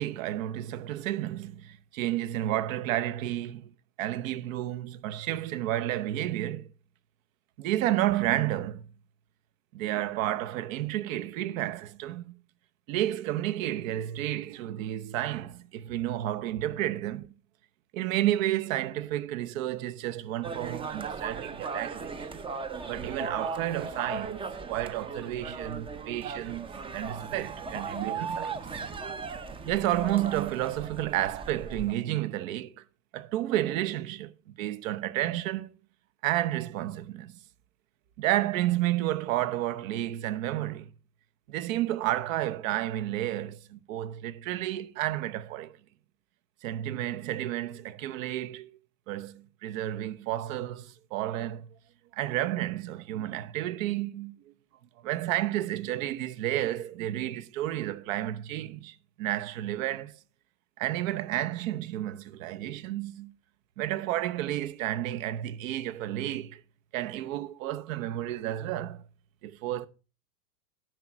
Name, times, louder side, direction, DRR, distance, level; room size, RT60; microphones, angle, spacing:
voice 1, 0.0-3.7 4.0-6.7 7.6-8.8 9.7-12.4 12.9-17.3 17.9-22.3 22.9-24.4 24.7-28.6 29.6-32.8 33.1-35.7 36.2-37.4 38.2-40.9 41.5-45.8 46.6-48.7 49.1-51.7 52.1-54.5 55.0-60.2 60.8-63.3 63.8-66.6 66.9-69.0 69.4-69.9, right 13 dB, 60° right, 0.9 m, -31 dB
sound 1, 20.4-31.9, right 4 dB, 10° right, 0.5 m, -37 dB
10.5 x 6.3 x 4.5 m
hypercardioid pair, 110°, 45 cm